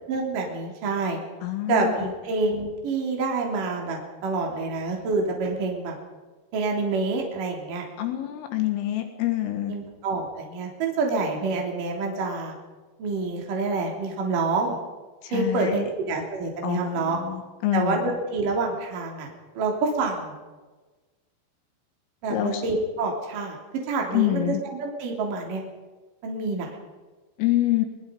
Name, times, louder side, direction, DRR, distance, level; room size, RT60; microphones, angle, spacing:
voice 1, 0.1-1.2 1.7-6.0 6.5-7.8 9.7-12.5 13.0-14.8 15.3-17.2 17.7-19.3 19.5-20.3 22.2-23.6 23.8-24.5 24.8-25.6 26.2-26.8, right 3 dB, 45° right, 0 dB, 4.4 m, -27 dB
voice 2, 1.4-2.1 8.0-9.7 15.2-15.9 16.6-18.1 22.3-22.6 24.1-24.6 27.4-27.9, left 14 dB, 80° left, 6 dB, 4.3 m, -26 dB
24.0 x 20.5 x 5.3 m, 1.3 s
omnidirectional pair, 5.8 m